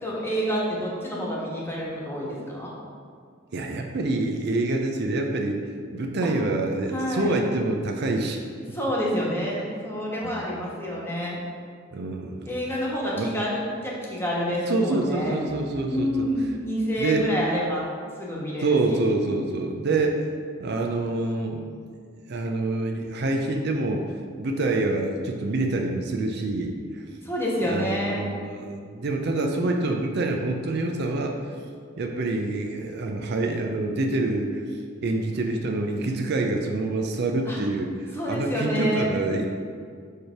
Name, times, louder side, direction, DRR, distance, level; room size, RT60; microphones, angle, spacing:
voice 1, 0.0-2.7 6.2-6.3 6.9-7.4 8.7-11.4 12.5-15.4 15.8-17.8 18.2-19.1 27.2-28.2 37.5-37.6 38.1-39.1, equal, 10° left, -5 dB, 1.3 m, -28 dB
voice 2, 3.5-5.6 5.9-8.4 10.2-10.5 11.9-12.5 13.2-13.3 14.7-16.3 17.0-17.3 18.6-20.3 20.6-21.6 22.3-24.1 24.4-27.0 27.6-31.5 32.0-34.6 35.0-39.5, right 2 dB, 55° right, 2 dB, 0.5 m, -26 dB
6.5 x 3.3 x 5.7 m, 2.1 s
head